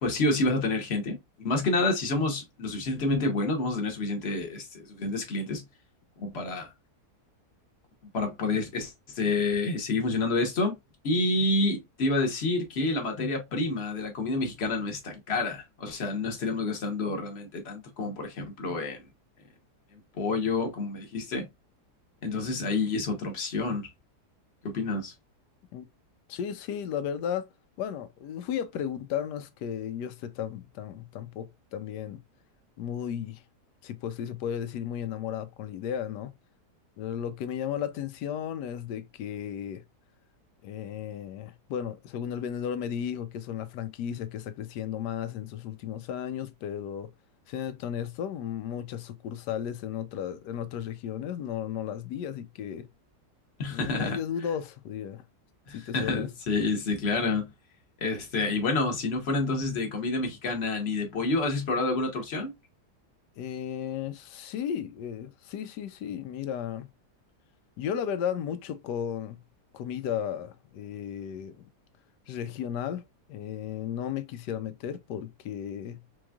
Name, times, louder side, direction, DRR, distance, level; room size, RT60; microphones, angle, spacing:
voice 1, 0.0-5.6 6.2-6.7 8.1-10.7 11.0-19.0 19.9-21.5 22.2-23.9 24.6-25.1 53.6-54.2 55.7-57.5 58.0-62.5, left 2 dB, 45° left, 1.2 m, -28 dB
voice 2, 26.3-27.5 27.8-32.2 32.8-33.4 33.8-36.3 37.0-39.8 40.6-47.1 47.5-52.9 53.7-55.2 55.7-56.3 63.4-66.9 67.8-69.4 69.7-71.6 72.3-73.0 73.3-76.0, left 9 dB, 90° left, 1.2 m, -34 dB
4.4 x 3.1 x 2.3 m
omnidirectional pair, 1.8 m